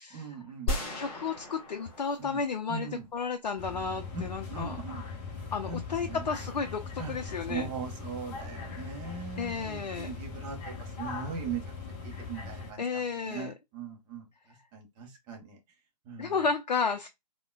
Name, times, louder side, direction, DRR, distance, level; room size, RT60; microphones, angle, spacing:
voice 1, 0.1-0.7 2.2-2.4 2.7-3.1 4.1-4.2 4.5-5.0 5.7-6.3 7.0-7.1 7.5-11.6 12.0-15.6 16.0-16.4, right 6 dB, 20° right, 0.6 m, -40 dB
voice 2, 0.7-4.8 5.5-7.7 9.4-10.1 12.8-13.5 16.2-17.1, left 5 dB, 75° left, 0.5 m, -32 dB
sound 1, 0.7-3.0, left 1 dB, 35° left, 1.5 m, -36 dB
sound 2, 3.6-12.7, left 4 dB, 20° left, 0.6 m, -40 dB
3.5 x 2.1 x 2.2 m
figure-of-eight pair, 130°, 21 cm